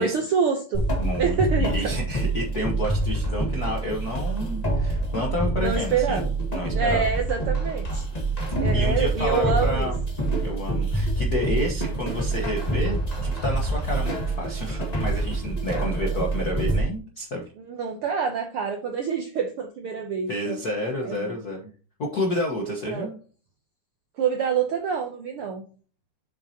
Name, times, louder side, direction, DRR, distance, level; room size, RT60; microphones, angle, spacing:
voice 1, 0.0-0.8 1.2-2.0 5.6-6.3 6.7-8.1 8.6-9.9 17.6-20.6 21.0-21.4 22.9-23.1 24.2-25.6, right 6 dB, 75° right, 4 dB, 1.3 m, -26 dB
sound 1, 0.7-16.8, right 2 dB, 20° left, 1.2 m, -26 dB
voice 2, 1.0-6.2 6.5-7.1 8.7-10.0 10.4-17.5 20.3-21.7 22.0-23.2, left 1 dB, 60° left, 0 dB, 1.0 m, -30 dB
7.4 x 7.1 x 2.9 m, 0.39 s
omnidirectional pair, 3.6 m